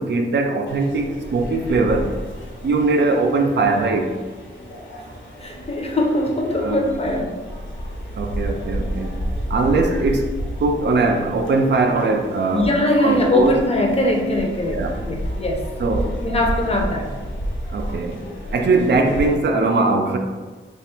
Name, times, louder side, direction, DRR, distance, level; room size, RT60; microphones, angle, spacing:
voice 1, 0.0-2.2 2.6-4.1 6.6-6.8 8.1-9.1 9.5-12.7 13.0-13.5 14.7-15.0 15.8-16.1 17.7-18.2 18.5-20.2, right 3 dB, 60° right, 4 dB, 0.4 m, -20 dB
sound 1, 0.7-19.4, equal, 75° left, 0.8 m, -31 dB
voice 2, 5.3-7.3 7.8-7.9 12.5-15.7 16.2-17.1 17.6-18.0, left 1 dB, 30° left, 1 dB, 0.6 m, -21 dB
3.2 x 2.3 x 4.3 m, 1.4 s
wide cardioid pair, 125°, 20 cm